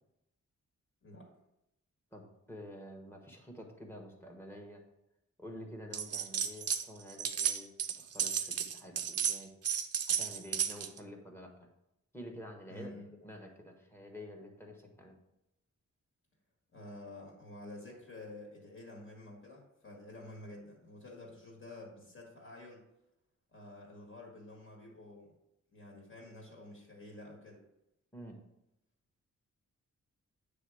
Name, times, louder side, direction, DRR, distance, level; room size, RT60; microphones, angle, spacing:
voice 1, 2.1-4.8 5.4-9.5 10.1-11.7 12.1-12.9 13.2-15.1 28.1-28.4, equal, 10° left, 2 dB, 1.2 m, -49 dB
sound 1, 5.9-6.8 7.1-11.0, right 8 dB, 50° right, 0.6 m, -33 dB
voice 2, 12.7-13.1 16.7-22.8 23.5-25.4 25.7-27.6, left 2 dB, 45° left, -2 dB, 1.7 m, -50 dB
9.0 x 3.5 x 4.8 m, 0.86 s
wide cardioid pair, 140°, 30 cm